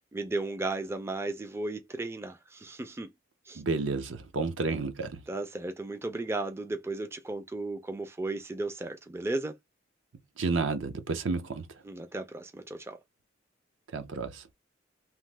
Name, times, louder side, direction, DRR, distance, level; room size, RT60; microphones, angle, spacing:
voice 1, 0.1-3.1 3.5-3.6 5.3-9.6 11.9-13.0, right 2 dB, 15° right, 0.3 m, -35 dB
voice 2, 3.5-5.2 10.4-11.7 13.9-14.5, right 3 dB, 80° right, 0.6 m, -31 dB
3.0 x 2.1 x 3.2 m
head